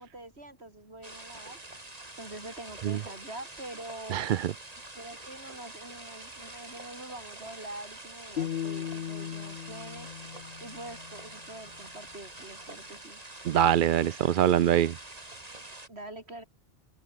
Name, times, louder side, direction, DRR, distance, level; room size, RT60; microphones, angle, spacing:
voice 1, 0.0-1.6 2.2-4.4 4.9-10.1 10.6-13.2 15.9-16.4, right 1 dB, 85° right, 6.2 m, -45 dB
sound 1, 1.0-15.9, right 2 dB, 40° right, 3.0 m, -46 dB
voice 2, 4.1-4.5 13.5-15.0, right 10 dB, 60° right, 0.6 m, -24 dB
sound 2, 8.4-11.5, left 9 dB, 60° left, 0.9 m, -37 dB
open air
omnidirectional pair, 1.1 m